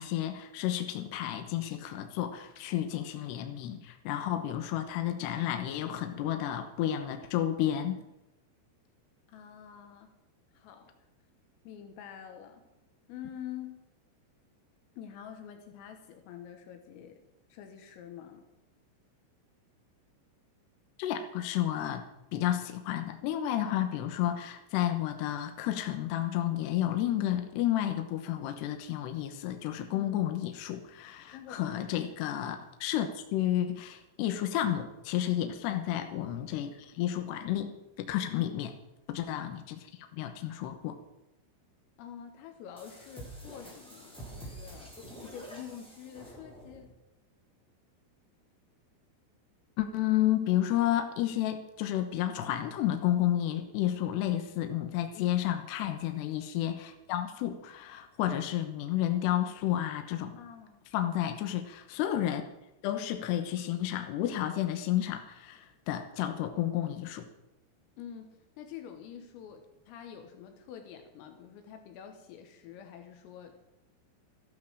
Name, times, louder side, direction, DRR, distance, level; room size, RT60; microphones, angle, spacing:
voice 1, 0.0-8.0 21.0-22.1 22.3-38.7 39.1-39.8 40.1-41.0 49.8-60.4 60.9-62.4 62.8-67.3, left 12 dB, 70° left, 6 dB, 2.9 m, -31 dB
voice 2, 9.3-10.1 10.5-10.9 11.7-12.6 13.1-13.8 15.0-17.2 17.5-18.5 29.9-30.3 31.3-31.9 35.4-35.7 38.3-38.7 42.0-46.9 55.1-55.4 60.4-60.8 68.0-73.7, left 9 dB, 85° left, 6 dB, 4.0 m, -47 dB
sound 1, 42.8-46.9, right 1 dB, ahead, 4.1 m, -47 dB
14.5 x 12.0 x 6.4 m, 0.92 s
omnidirectional pair, 5.8 m